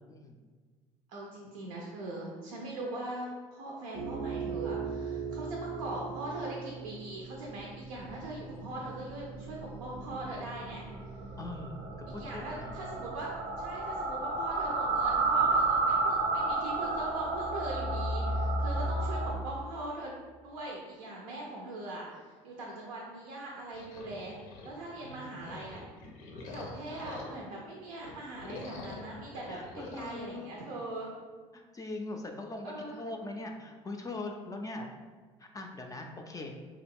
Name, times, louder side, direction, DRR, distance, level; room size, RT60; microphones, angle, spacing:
voice 1, 1.1-10.8 12.2-13.3 13.6-20.1 20.4-24.4 24.6-25.8 26.4-31.1 32.6-33.0, right 2 dB, 80° right, -2 dB, 0.5 m, -41 dB
sound 1, 3.9-19.3, right 3 dB, 35° right, 0.5 m, -33 dB
voice 2, 11.4-12.8 25.0-25.6 29.5-30.8 31.5-34.9 35.4-36.5, left 2 dB, 20° left, 2 dB, 0.3 m, -41 dB
sound 2, 23.7-27.6 28.0-30.2, left 2 dB, 80° left, 0.5 m, -46 dB
2.9 x 2.3 x 3.4 m, 1.5 s
hypercardioid pair, 65°, 17 cm